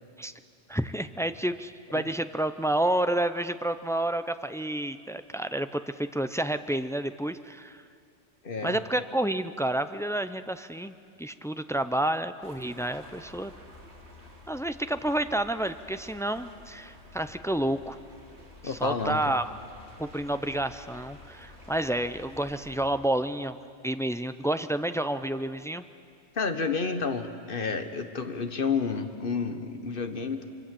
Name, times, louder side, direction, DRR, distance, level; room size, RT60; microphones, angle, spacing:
voice 1, 0.7-7.8 8.6-13.5 14.5-18.0 18.6-19.5 20.0-23.6 23.8-25.8, right 1 dB, 5° left, 11 dB, 0.3 m, -30 dB
voice 2, 8.4-8.8 18.6-19.3 26.3-30.5, left 5 dB, 55° left, 8 dB, 1.5 m, -30 dB
sound 1, 12.4-22.8, left 1 dB, 75° right, 3.5 m, -50 dB
25.0 x 24.0 x 7.7 m, 2.4 s
omnidirectional pair, 1.1 m